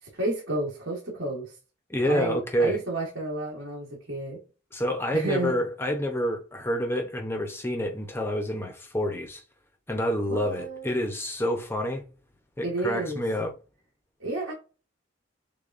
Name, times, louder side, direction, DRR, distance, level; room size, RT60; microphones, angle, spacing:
voice 1, 0.0-1.6 2.0-4.4 5.1-5.5 10.3-11.0 12.6-13.2 14.2-14.5, right 2 dB, 60° right, 1.6 m, -31 dB
voice 2, 1.9-2.8 4.7-9.4 9.9-12.0 12.6-13.5, equal, 10° left, 0.7 m, -28 dB
6.6 x 2.3 x 2.5 m
head